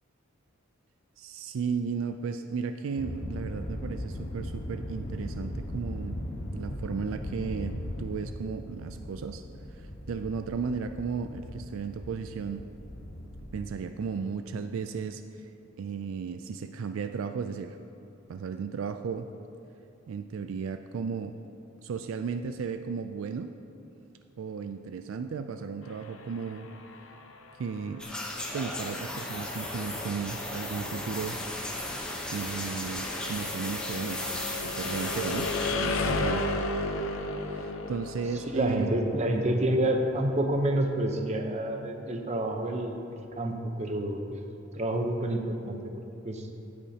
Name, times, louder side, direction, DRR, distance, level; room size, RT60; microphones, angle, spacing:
voice 1, 1.2-6.2 6.5-9.4 9.7-12.6 13.5-15.5 15.8-17.8 18.3-19.3 20.1-21.3 21.8-23.5 24.4-26.7 27.6-28.1 28.5-31.4 32.3-36.5 37.4-38.9, right 5 dB, 75° right, 8 dB, 0.4 m, -35 dB
sound 1, 3.0-13.6, left 1 dB, 50° left, 1.1 m, -38 dB
sound 2, 25.8-41.6, left 2 dB, 75° left, 0.7 m, -36 dB
sound 3, 28.0-35.7, left 1 dB, 5° left, 0.9 m, -35 dB
voice 2, 38.5-43.0 43.4-44.4 44.7-45.4 45.6-45.9 46.2-46.4, right 1 dB, 35° right, 4 dB, 0.8 m, -28 dB
16.0 x 8.5 x 2.9 m, 2.8 s
head